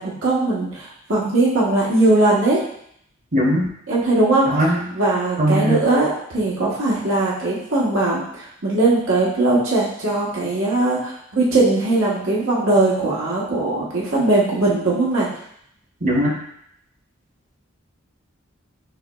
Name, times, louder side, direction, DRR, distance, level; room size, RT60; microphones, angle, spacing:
voice 1, 0.0-2.6 3.9-4.5 4.9-15.3, right 2 dB, 85° right, -6 dB, 1.2 m, -19 dB
voice 2, 3.3-3.7 4.5-4.8 5.4-5.8 16.0-16.4, equal, 40° right, -2 dB, 0.9 m, -19 dB
5.5 x 3.0 x 2.3 m, 0.70 s
head